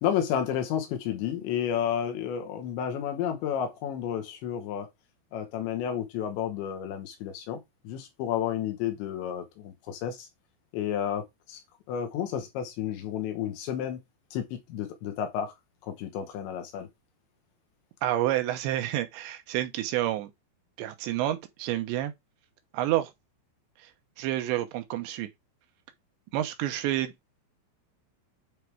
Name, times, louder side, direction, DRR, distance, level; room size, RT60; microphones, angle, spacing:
voice 1, 0.0-4.9 5.3-7.6 7.9-10.3 10.7-11.6 11.9-14.0 14.3-15.5 15.9-16.9, left 9 dB, 85° left, 3.7 m, -31 dB
voice 2, 18.0-20.3 20.8-22.1 22.7-23.1 24.2-25.3 26.3-27.1, right 13 dB, 90° right, 3.2 m, -29 dB
9.0 x 3.5 x 4.7 m
omnidirectional pair, 5.1 m